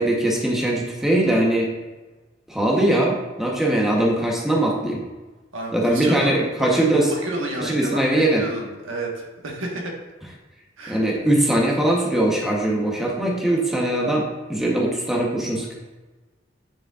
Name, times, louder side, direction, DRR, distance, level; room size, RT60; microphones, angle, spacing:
voice 1, 0.0-1.7 2.5-5.0 5.7-7.1 7.6-8.4 10.9-15.7, right 1 dB, ahead, -3 dB, 0.9 m, -21 dB
voice 2, 5.5-6.9 7.2-9.9 10.8-11.0, right 1 dB, 80° right, -1 dB, 1.4 m, -30 dB
9.3 x 5.0 x 2.4 m, 1.2 s
head